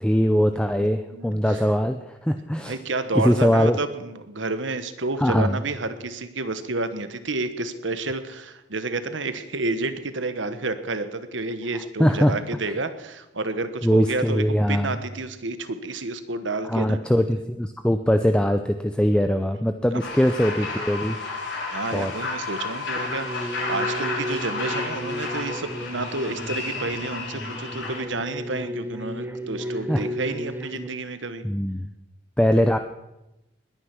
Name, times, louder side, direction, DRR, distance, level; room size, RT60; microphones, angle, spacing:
voice 1, 0.0-2.8 3.1-3.8 5.2-5.6 12.0-12.3 13.8-15.0 16.7-21.2 21.9-22.1 29.9-30.0 31.4-31.9 32.4-32.8, equal, 5° left, 7 dB, 0.5 m, -21 dB
voice 2, 1.1-1.6 2.6-17.0 19.9-20.0 21.7-31.4, right 2 dB, 75° right, 10 dB, 1.4 m, -30 dB
sound 1, 20.0-28.0, left 3 dB, 65° left, 4.2 m, -32 dB
sound 2, 23.0-30.9, equal, 10° right, 1.0 m, -34 dB
20.5 x 10.0 x 6.2 m, 0.94 s
head